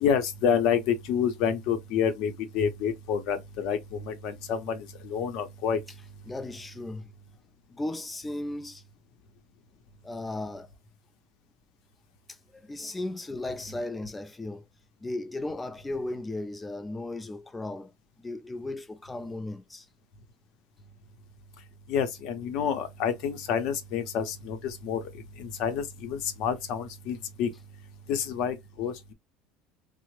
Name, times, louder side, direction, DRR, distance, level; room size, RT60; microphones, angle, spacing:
voice 1, 0.0-5.8 21.9-27.5 28.1-29.1, left 7 dB, 55° left, 0.7 m, -28 dB
voice 2, 6.3-7.1 7.7-8.8 10.0-10.7 12.3-14.6 15.0-17.9 18.2-19.9, left 2 dB, 10° left, 0.4 m, -36 dB
3.3 x 2.0 x 3.1 m
cardioid pair, 160°, 0 cm